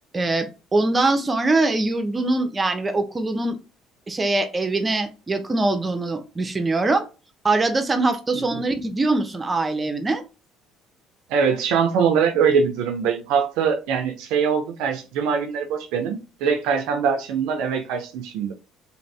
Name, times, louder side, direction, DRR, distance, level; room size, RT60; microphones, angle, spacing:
voice 1, 0.1-3.6 4.1-7.0 7.4-10.2, right 2 dB, 25° right, 7 dB, 0.7 m, -22 dB
voice 2, 11.3-18.5, right 6 dB, 75° right, 6 dB, 0.5 m, -22 dB
2.7 x 2.6 x 3.2 m, 0.32 s
hypercardioid pair, 65°, 0 cm